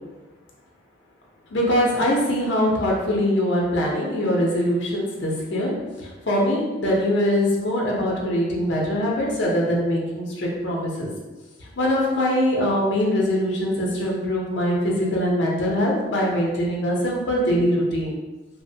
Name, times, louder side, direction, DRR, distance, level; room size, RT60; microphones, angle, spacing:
voice 1, 1.5-5.7 6.3-11.1 11.8-18.2, equal, 65° left, -3 dB, 0.6 m, -22 dB
2.9 x 2.0 x 2.7 m, 1.2 s
head